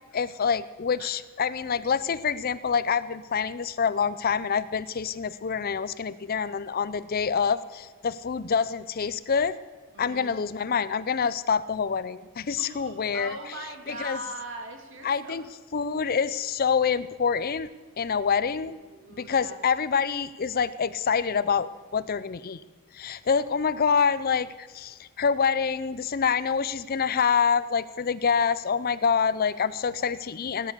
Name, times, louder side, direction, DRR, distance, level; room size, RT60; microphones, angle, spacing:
voice 1, 0.1-9.6 10.0-13.3 13.9-14.2 15.0-15.4 15.7-18.8 19.2-22.6 22.9-30.7, left 6 dB, 45° left, 16 dB, 0.5 m, -26 dB
voice 2, 9.9-10.4 12.6-15.5 18.2-19.6, right 1 dB, 60° right, 4 dB, 2.4 m, -41 dB
17.0 x 12.5 x 6.7 m, 1.4 s
head